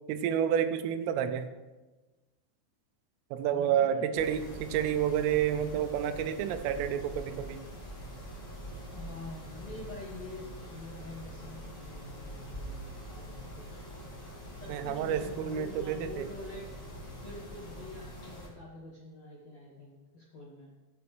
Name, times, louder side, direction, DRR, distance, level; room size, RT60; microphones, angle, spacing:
voice 1, 0.1-1.5 3.3-7.6 14.7-16.3, right 9 dB, 85° right, 9 dB, 3.3 m, -29 dB
voice 2, 3.5-4.6 8.9-14.0 14.6-16.7 17.2-20.7, left 2 dB, 70° left, -5 dB, 1.6 m, -46 dB
Mechanisms, 4.2-18.5, equal, 20° left, 2.5 m, -44 dB
19.5 x 8.2 x 3.3 m, 1.2 s
omnidirectional pair, 5.7 m